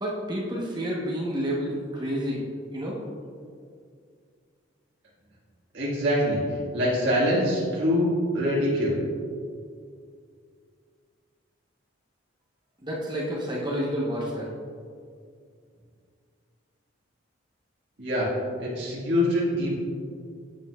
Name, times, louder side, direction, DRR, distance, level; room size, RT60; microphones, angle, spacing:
voice 1, 0.0-2.4 2.7-3.0 12.8-14.5, equal, 20° right, -4 dB, 0.9 m, -29 dB
voice 2, 5.7-6.4 6.7-9.0 18.0-18.3 18.6-19.7, equal, 60° right, -7 dB, 1.6 m, -24 dB
8.9 x 7.7 x 2.3 m, 2.2 s
head